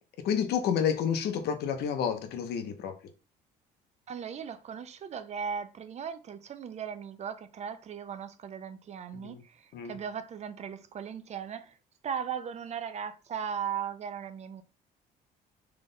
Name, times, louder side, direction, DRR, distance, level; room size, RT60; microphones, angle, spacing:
voice 1, 0.2-2.9 9.1-9.4 9.7-10.0, left 8 dB, 75° left, 0.9 m, -30 dB
voice 2, 4.1-11.8 12.0-14.6, right 7 dB, 40° right, 0.5 m, -37 dB
3.7 x 3.3 x 3.9 m
cardioid pair, 110°, 17 cm